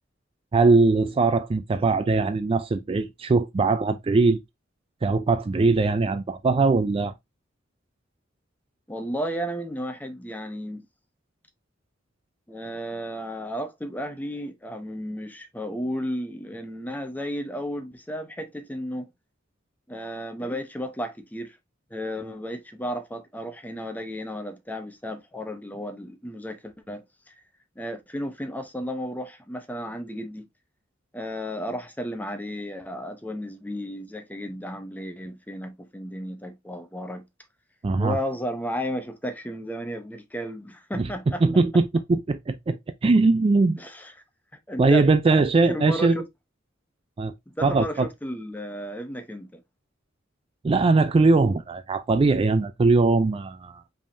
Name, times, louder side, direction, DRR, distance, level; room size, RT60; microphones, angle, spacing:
voice 1, 0.5-4.4 5.0-7.1 37.8-38.2 41.0-41.1 41.4-43.8 44.8-46.2 47.2-47.3 47.6-48.1 50.6-53.8, right 3 dB, 30° right, 0.3 m, -21 dB
voice 2, 8.9-10.8 12.5-19.1 19.9-21.6 21.9-27.3 27.8-30.5 31.1-37.2 38.0-41.4 43.8-44.1 44.7-46.2 47.5-49.6, equal, 10° left, 0.7 m, -33 dB
5.2 x 3.5 x 2.6 m
head